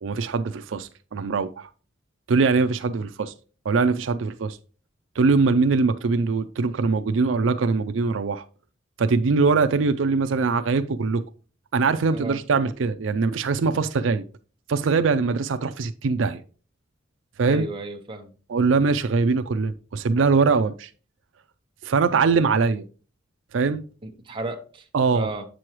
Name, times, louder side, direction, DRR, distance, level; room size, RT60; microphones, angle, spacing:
voice 1, 0.0-1.7 2.3-3.3 3.7-4.6 5.2-8.4 9.0-11.2 11.7-14.2 14.7-16.4 17.4-17.7 18.5-20.9 21.8-22.8 23.5-23.8 24.9-25.3, right 4 dB, 80° right, 0.5 m, -22 dB
voice 2, 17.4-18.3 24.0-25.4, right 2 dB, 25° right, 1.0 m, -33 dB
8.3 x 6.2 x 3.0 m
head